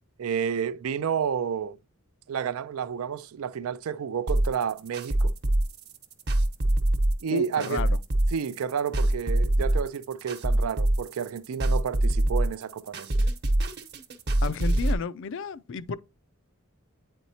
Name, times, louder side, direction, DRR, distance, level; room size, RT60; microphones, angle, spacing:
voice 1, 0.2-1.8 2.3-5.3 7.2-7.8 8.3-13.1, right 7 dB, 80° right, 0.4 m, -30 dB
sound 1, 4.3-14.9, right 1 dB, 50° right, 1.0 m, -24 dB
voice 2, 7.3-8.0 14.4-16.0, left 5 dB, 60° left, 0.4 m, -33 dB
9.0 x 4.4 x 2.8 m
head